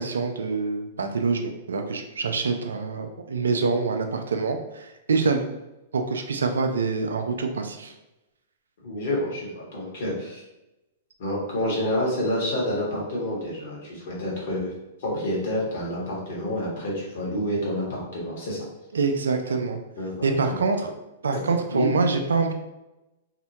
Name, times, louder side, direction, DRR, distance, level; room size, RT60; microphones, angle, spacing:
voice 1, 0.0-5.5 5.9-7.9 18.9-19.8 20.2-20.9 21.2-22.5, right 4 dB, 85° right, 5 dB, 0.4 m, -25 dB
voice 2, 8.8-10.4 11.2-14.7 15.0-18.6 20.0-20.6 21.3-21.9, left 1 dB, 65° left, -4 dB, 1.2 m, -28 dB
2.7 x 2.1 x 2.8 m, 0.96 s
hypercardioid pair, 115°, 0 cm